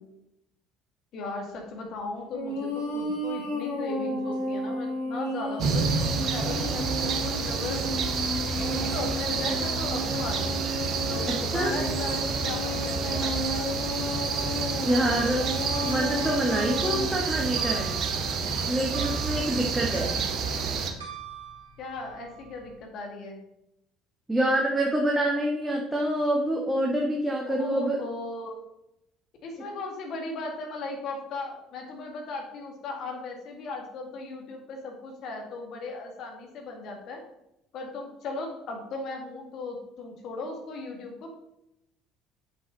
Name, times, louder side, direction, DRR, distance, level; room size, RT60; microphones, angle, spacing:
voice 1, 1.1-8.1 8.6-10.6 11.1-13.7 21.8-23.4 27.5-28.6 29.4-37.2 37.7-41.3, left 3 dB, 55° left, 2 dB, 2.1 m, -37 dB
sound 1, 2.3-17.1, left 1 dB, 75° left, 1.9 m, -33 dB
sound 2, 5.6-20.9, right 5 dB, 50° right, 1.1 m, -29 dB
voice 2, 11.3-11.7 14.8-15.5 15.8-18.0 18.7-20.2 24.3-28.0 29.6-29.7, right 1 dB, 10° right, -2 dB, 1.6 m, -26 dB
sound 3, 14.9-22.8, right 5 dB, 80° right, 1.6 m, -43 dB
7.4 x 7.2 x 4.0 m, 0.84 s
figure-of-eight pair, 55°, 0 cm